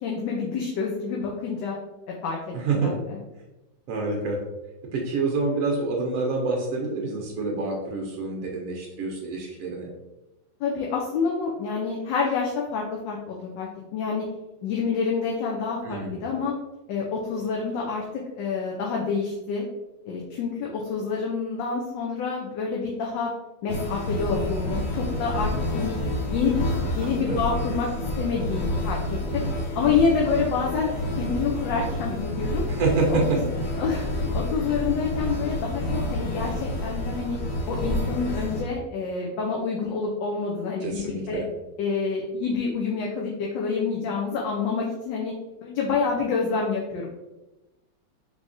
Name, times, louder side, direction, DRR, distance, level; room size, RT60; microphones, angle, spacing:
voice 1, 0.0-1.8 2.2-2.4 2.7-3.2 10.6-14.2 14.6-16.5 16.9-18.0 18.4-19.6 20.1-23.3 23.6-25.9 26.3-26.6 26.9-27.9 28.2-29.0 29.3-29.4 29.7-30.9 31.2-32.6 33.1-33.4 33.8-37.4 37.7-41.4 41.8-45.3 45.6-47.1, left 5 dB, 75° left, -2 dB, 1.2 m, -27 dB
voice 2, 2.5-2.9 3.9-4.4 4.9-9.9 15.8-16.2 27.0-27.4 32.7-33.4 33.7-33.8 40.8-41.5, right 3 dB, 70° right, 0 dB, 0.8 m, -27 dB
sound 1, 23.7-38.6, left 1 dB, 60° left, 0.9 m, -29 dB
3.6 x 3.3 x 2.5 m, 1.0 s
omnidirectional pair, 2.1 m